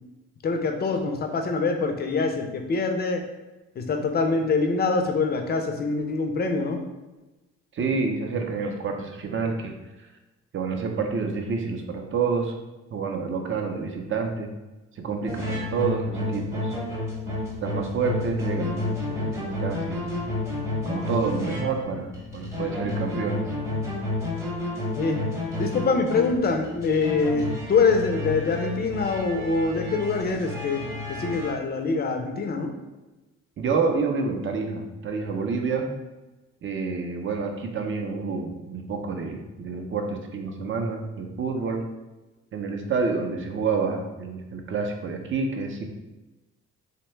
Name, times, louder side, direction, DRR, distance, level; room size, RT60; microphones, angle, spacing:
voice 1, 0.4-3.2 3.8-6.8 25.0-25.2 25.6-32.7, left 4 dB, 35° left, 5 dB, 0.4 m, -24 dB
voice 2, 7.7-9.7 10.0-10.1 10.5-12.5 12.9-14.5 14.9-16.8 17.6-20.2 20.9-23.5 33.6-35.9 36.6-41.8 42.5-45.9, right 4 dB, 40° right, 3 dB, 0.5 m, -28 dB
sound 1, 15.3-31.5, left 2 dB, 10° right, 0.8 m, -31 dB
2.7 x 2.1 x 3.1 m, 1.1 s
cardioid pair, 90°, 30 cm